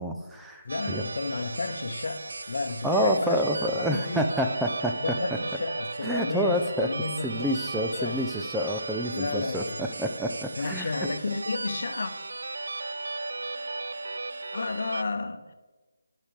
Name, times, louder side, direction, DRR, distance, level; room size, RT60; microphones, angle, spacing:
voice 1, 0.0-1.0 2.8-4.9 6.0-6.9 7.2-9.6 10.0-10.9, equal, 5° right, 3 dB, 0.5 m, -28 dB
voice 2, 0.6-4.2 5.0-8.3 9.1-9.9 10.5-12.1 14.5-15.5, left 3 dB, 55° left, 8 dB, 0.9 m, -32 dB
sound 1, 0.7-15.0, right 3 dB, 65° right, 0.4 m, -36 dB
19.0 x 6.6 x 3.5 m, 1.2 s
figure-of-eight pair, 155°, 0 cm